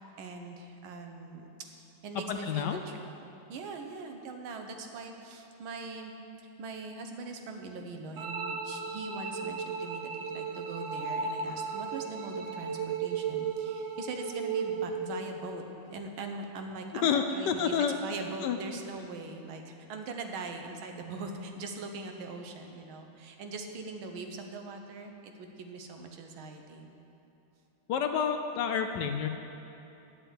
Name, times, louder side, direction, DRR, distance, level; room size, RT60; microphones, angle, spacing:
voice 1, 0.2-6.2 6.6-15.6 15.9-17.7 18.0-26.9, right 3 dB, 85° right, 4 dB, 1.8 m, -41 dB
voice 2, 2.1-2.8 17.0-17.9 18.4-18.6 27.9-29.3, left 7 dB, 70° left, 6 dB, 1.1 m, -29 dB
sound 1, 8.2-15.1, right 5 dB, 65° right, 0.8 m, -35 dB
9.6 x 7.8 x 8.0 m, 2.8 s
omnidirectional pair, 2.2 m